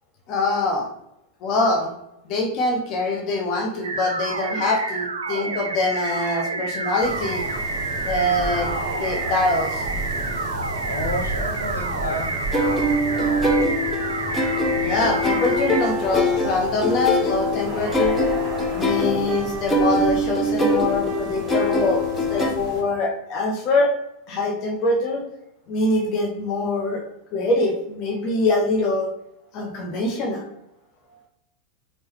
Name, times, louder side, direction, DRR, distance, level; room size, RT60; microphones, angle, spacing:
voice 1, 0.3-0.9 1.4-1.9 2.3-7.4 8.0-8.7 9.0-9.8 14.8-18.2 18.7-22.0 22.3-23.9 24.3-25.2 25.7-27.0 27.3-29.1 29.5-30.4, left 2 dB, 40° left, 2 dB, 0.9 m, -23 dB
sound 1, 3.8-15.8, right 3 dB, 70° right, 0.4 m, -29 dB
sound 2, 7.0-22.8, right 1 dB, 30° right, 1.0 m, -33 dB
voice 2, 10.8-13.6, equal, 75° left, -2 dB, 0.8 m, -32 dB
sound 3, 12.5-22.5, left 1 dB, 15° left, 0.6 m, -23 dB
4.7 x 2.2 x 3.0 m, 0.80 s
figure-of-eight pair, 90°, 0 cm